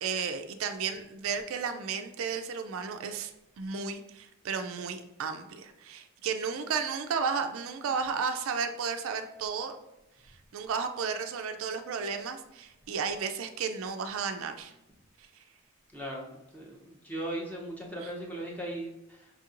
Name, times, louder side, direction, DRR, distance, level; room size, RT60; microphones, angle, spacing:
voice 1, 0.0-3.3 3.6-9.8 10.5-14.7 18.0-18.1, right 5 dB, 75° right, 8 dB, 0.3 m, -33 dB
voice 2, 15.9-19.3, right 1 dB, 5° left, -2 dB, 0.6 m, -38 dB
5.2 x 2.9 x 2.4 m, 0.93 s
head